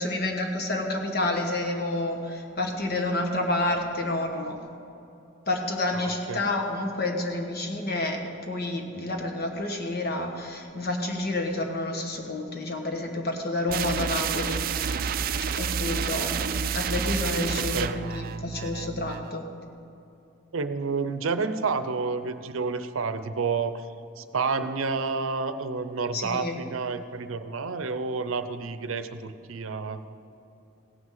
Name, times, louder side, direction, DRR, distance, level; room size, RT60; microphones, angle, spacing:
voice 1, 0.0-4.6 5.5-8.2 8.5-15.0 15.6-19.5 26.1-26.6, left 2 dB, 50° left, 2 dB, 1.4 m, -29 dB
voice 2, 5.9-6.4 17.6-18.0 20.5-23.8 24.2-30.0, right 4 dB, 85° right, 11 dB, 0.6 m, -30 dB
sound 1, 13.7-19.3, right 7 dB, 45° right, 0.4 m, -29 dB
16.5 x 6.1 x 7.5 m, 2.6 s
head